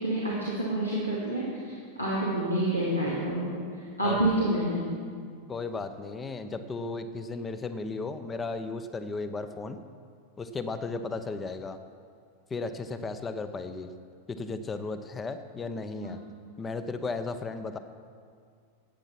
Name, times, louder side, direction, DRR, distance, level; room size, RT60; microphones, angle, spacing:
voice 1, 0.0-3.5 4.0-4.8 16.0-16.2, right 1 dB, 85° left, -7 dB, 2.5 m, -28 dB
voice 2, 5.5-9.8 10.4-11.8 12.5-13.9 14.3-16.2 16.6-17.8, left 3 dB, 20° left, 10 dB, 0.7 m, -35 dB
13.5 x 8.9 x 5.9 m, 2.1 s
figure-of-eight pair, 90°, 0 cm